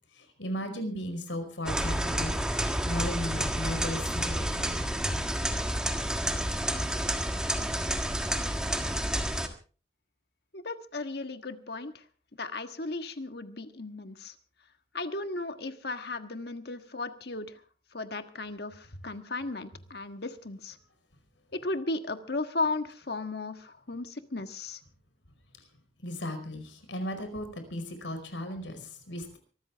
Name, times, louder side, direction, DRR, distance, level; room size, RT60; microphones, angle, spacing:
voice 1, 0.4-5.1 26.0-29.4, left 1 dB, 85° left, 7 dB, 5.0 m, -36 dB
sound 1, 1.7-9.5, right 1 dB, 5° right, 1.6 m, -30 dB
voice 2, 10.5-11.9 12.4-14.3 14.9-17.5 17.9-20.8 21.6-24.8, left 3 dB, 60° left, 8 dB, 1.5 m, -35 dB
24.5 x 13.5 x 3.5 m, 0.38 s
head